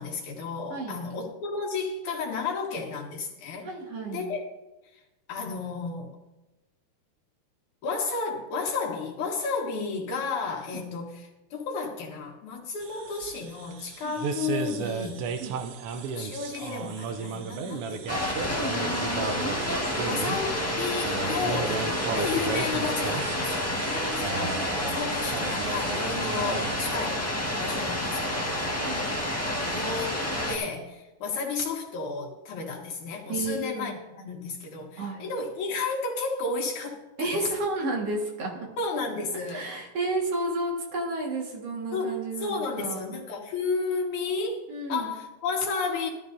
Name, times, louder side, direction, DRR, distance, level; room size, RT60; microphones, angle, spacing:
voice 1, 0.0-3.7 4.1-4.4 5.3-6.2 7.8-15.3 16.0-18.6 18.9-23.7 24.2-27.3 27.6-28.6 29.6-30.2 30.5-37.3 38.8-39.6 41.9-46.1, left 4 dB, 80° left, -2 dB, 3.2 m, -32 dB
voice 2, 3.6-4.3 10.7-10.8 14.0-14.1 15.4-15.5 21.9-22.0 23.8-24.7 27.6-27.8 28.8-29.0 33.3-34.0 35.0-35.3 37.2-38.6 39.5-43.2 44.7-45.1, right 2 dB, 60° right, 0 dB, 2.7 m, -32 dB
sound 1, 12.8-26.9, right 5 dB, 75° right, 1.3 m, -35 dB
sound 2, 18.1-30.6, left 1 dB, 10° left, 0.6 m, -29 dB
15.5 x 12.5 x 2.7 m, 1.1 s
omnidirectional pair, 3.4 m